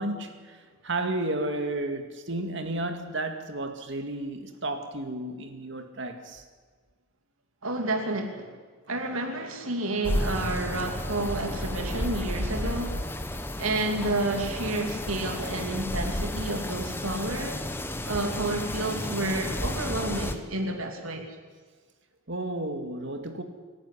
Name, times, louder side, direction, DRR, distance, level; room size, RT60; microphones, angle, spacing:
voice 1, 0.0-6.4 11.3-11.4 22.3-23.4, right 2 dB, 55° right, 2.2 m, -32 dB
voice 2, 7.6-8.5 8.9-13.0 13.6-17.6 18.0-21.3, right 2 dB, 80° right, 2.7 m, -30 dB
sound 1, 10.0-20.4, left 1 dB, 10° left, 1.1 m, -32 dB
24.5 x 11.5 x 9.9 m
head